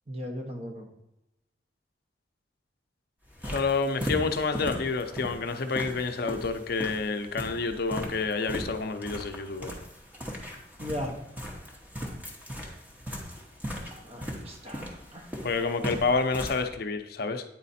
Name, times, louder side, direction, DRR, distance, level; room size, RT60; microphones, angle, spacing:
voice 1, 0.1-0.9 10.8-11.2 14.0-15.3, equal, 35° right, 2 dB, 1.1 m, -37 dB
sound 1, 3.2-16.6, equal, 10° right, 1.0 m, -38 dB
voice 2, 3.4-9.8 15.4-17.4, left 4 dB, 55° left, 7 dB, 0.5 m, -29 dB
9.0 x 4.1 x 4.2 m, 0.90 s
head